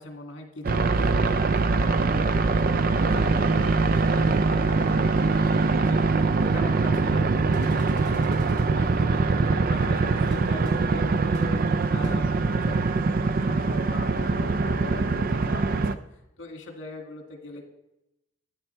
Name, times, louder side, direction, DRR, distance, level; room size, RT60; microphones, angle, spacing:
voice 1, 0.0-11.6 11.9-16.0 16.4-17.6, left 2 dB, 70° left, 3 dB, 2.1 m, -41 dB
sound 1, 0.6-15.9, right 3 dB, 45° right, 0.4 m, -23 dB
sound 2, 7.5-8.7 10.3-10.4 10.6-10.7 11.3-11.4 12.0-12.1, equal, 25° right, 2.4 m, -50 dB
12.5 x 9.6 x 4.4 m, 0.89 s
head